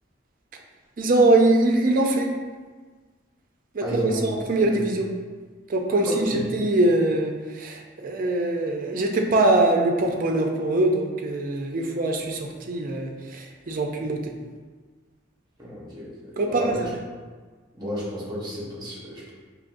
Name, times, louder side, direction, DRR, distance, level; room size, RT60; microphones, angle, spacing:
voice 1, 1.0-2.4 3.7-5.1 5.7-14.3 16.4-16.9, right 2 dB, 45° right, 2 dB, 0.5 m, -23 dB
voice 2, 3.8-4.3 4.6-4.9 6.0-6.4 15.6-16.8 17.7-19.3, equal, 20° right, -6 dB, 1.0 m, -31 dB
4.9 x 3.0 x 2.6 m, 1.4 s
head